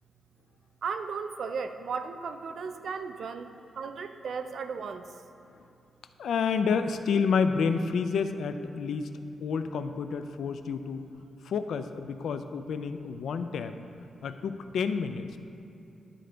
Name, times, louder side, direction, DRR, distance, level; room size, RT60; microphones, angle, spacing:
voice 1, 0.8-5.0, right 5 dB, 65° right, 9 dB, 0.4 m, -35 dB
voice 2, 6.2-9.1 9.4-11.1 11.4-13.7 14.2-15.5, left 5 dB, 80° left, 9 dB, 0.3 m, -29 dB
11.5 x 3.8 x 3.3 m, 2.8 s
wide cardioid pair, 120°, 0 cm